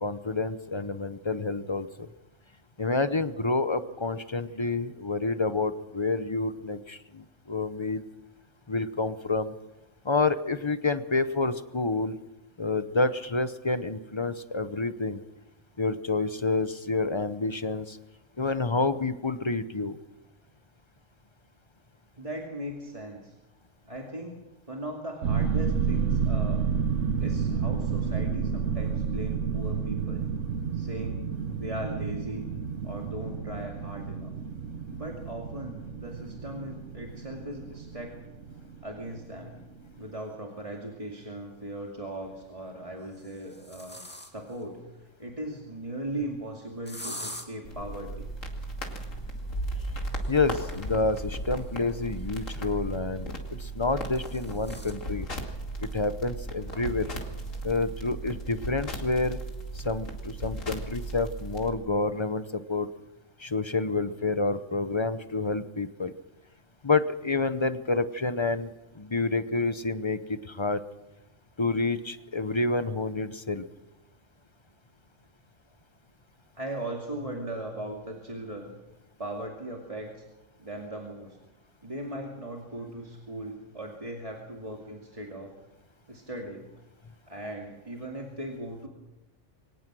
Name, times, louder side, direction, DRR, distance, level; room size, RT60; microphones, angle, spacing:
voice 1, 0.0-2.1 2.8-8.0 8.7-9.5 10.0-12.2 12.6-15.2 15.8-18.0 18.4-20.0 50.3-53.3 53.6-55.3 55.8-57.1 57.6-59.4 59.8-62.9 63.4-66.1 66.8-70.8 71.6-73.7, left 3 dB, 25° left, 12 dB, 0.7 m, -28 dB
voice 2, 22.2-23.3 23.9-24.4 24.7-26.7 27.2-30.3 30.7-31.2 31.6-32.5 32.8-34.3 34.9-38.2 38.8-39.5 40.0-44.0 44.3-44.8 45.2-48.3 76.5-78.7 79.2-80.2 80.6-81.4 81.8-85.5 86.1-86.7 87.3-88.9, right 1 dB, 25° right, 0 dB, 2.5 m, -38 dB
sound 1, 25.2-39.7 40.0-40.1, right 6 dB, 70° right, 1.3 m, -30 dB
sound 2, 40.5-40.6 42.0-42.4 43.0-44.6 46.9-47.5 50.1-52.7 53.7-55.0 55.5-55.6 55.9-56.0 56.7-56.8 57.2-57.6, left 1 dB, 10° left, 2.3 m, -45 dB
sound 3, 47.6-61.7, right 1 dB, 85° left, 2.9 m, -36 dB
23.5 x 19.0 x 6.2 m, 0.98 s
omnidirectional pair, 1.3 m